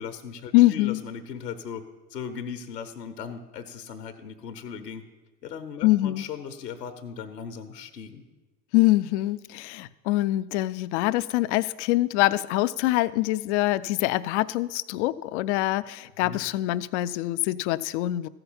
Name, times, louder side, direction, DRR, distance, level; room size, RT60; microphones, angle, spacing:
voice 1, 0.0-1.8 2.1-5.0 5.4-8.3 16.2-16.4, left 7 dB, 80° left, 8 dB, 1.0 m, -38 dB
voice 2, 0.5-1.0 5.8-6.3 8.7-18.3, left 17 dB, 50° left, 17 dB, 0.5 m, -24 dB
14.5 x 5.8 x 7.1 m, 1.2 s
figure-of-eight pair, 80°, 48 cm